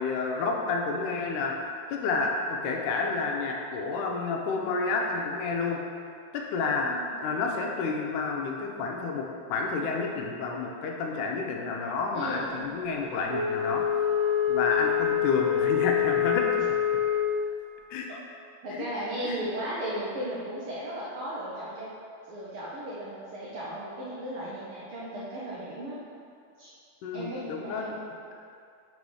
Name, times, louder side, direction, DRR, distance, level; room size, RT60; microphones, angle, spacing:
voice 1, 0.0-5.8 6.3-6.9 7.2-13.8 14.5-16.8 17.9-18.1 18.7-18.9 19.2-19.4 27.0-28.0, left 4 dB, 85° left, 0 dB, 2.1 m, -30 dB
voice 2, 6.8-7.1 12.1-12.6 18.6-21.9 22.3-26.0 26.6-26.7 27.1-28.0, right 1 dB, 80° right, -7 dB, 1.2 m, -36 dB
Wind instrument woodwind instrument, 13.3-17.4, left 9 dB, 60° right, 1.5 m, -26 dB
5.4 x 4.1 x 4.8 m, 2.4 s
omnidirectional pair, 3.5 m